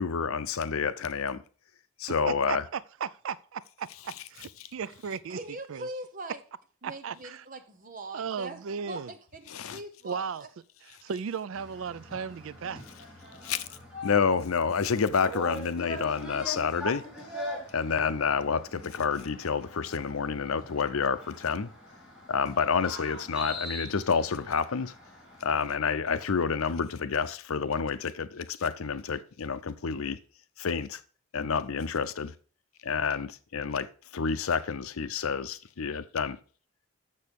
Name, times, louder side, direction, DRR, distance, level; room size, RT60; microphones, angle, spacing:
voice 1, 0.0-1.4 2.0-2.6 9.5-9.8 13.4-13.7 14.0-17.0 17.7-21.7 22.3-24.9 25.4-30.2 30.6-31.0 31.3-32.3 32.8-33.9 34.1-36.4, left 5 dB, 85° left, 0.6 m, -29 dB
voice 2, 2.3-5.4 5.7-5.9 6.8-7.5 8.1-9.1 10.0-10.4 10.8-12.8, right 6 dB, 70° right, 0.4 m, -36 dB
voice 3, 5.3-6.4 6.8-8.6 8.9-10.2, right 2 dB, 40° right, 1.0 m, -41 dB
sound 1, 11.5-25.7, left 1 dB, 5° right, 3.0 m, -42 dB
6.8 x 6.6 x 5.2 m
head